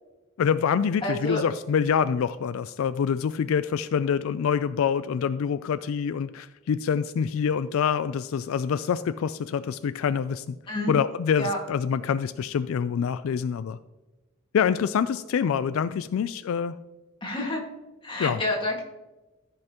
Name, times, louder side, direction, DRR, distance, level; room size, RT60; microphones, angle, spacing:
voice 1, 0.4-10.6 10.9-13.8 14.5-16.8 18.2-18.4, left 7 dB, 75° left, 13 dB, 0.3 m, -26 dB
voice 2, 1.0-1.4 10.7-10.9 11.4-11.6 17.2-17.6 18.0-18.8, left 1 dB, 25° left, -1 dB, 1.8 m, -28 dB
14.5 x 5.5 x 2.9 m, 1.1 s
head